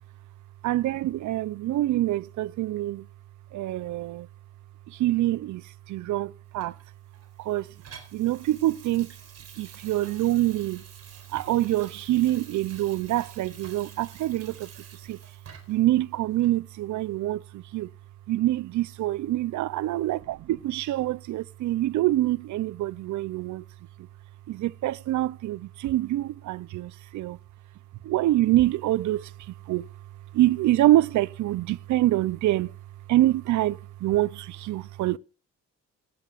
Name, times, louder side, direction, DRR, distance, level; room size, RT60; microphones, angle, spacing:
voice 1, 0.6-3.1 3.5-4.3 4.9-6.8 7.4-7.7 8.1-9.2 9.6-10.8 11.3-15.2 15.7-17.9 18.3-23.6 24.0-24.1 24.5-27.4 28.0-29.9 30.3-32.7 33.1-35.2, right 15 dB, 75° right, 0.6 m, -26 dB
Water tap faucet / Sink (filling or washing), 6.6-15.9 16.4-16.5, right 6 dB, 55° right, 3.9 m, -49 dB
21.0 x 11.0 x 2.5 m
cardioid pair, 90°, 30 cm